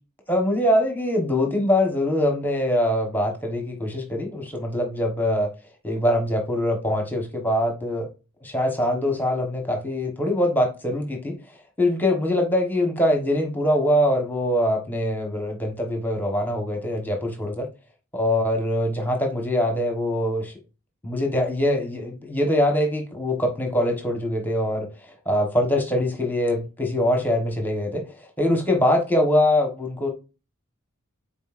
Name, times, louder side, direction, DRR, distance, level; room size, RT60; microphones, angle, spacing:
voice 1, 0.3-5.5 5.8-8.1 8.4-11.4 11.8-17.6 18.1-20.5 21.0-24.9 25.3-28.0 28.4-30.1, left 1 dB, 10° left, 1.1 m, -23 dB
9.2 x 4.2 x 2.5 m
head